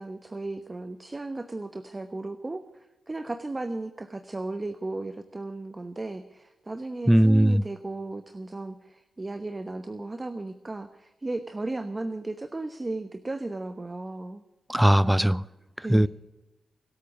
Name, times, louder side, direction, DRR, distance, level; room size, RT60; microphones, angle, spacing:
voice 1, 0.0-14.4 15.8-16.1, right 2 dB, 30° right, 1.0 m, -35 dB
voice 2, 7.1-7.6 14.7-15.4 15.9-16.1, right 1 dB, 5° right, 0.5 m, -19 dB
24.5 x 8.5 x 6.4 m
supercardioid pair, 45°, 0 cm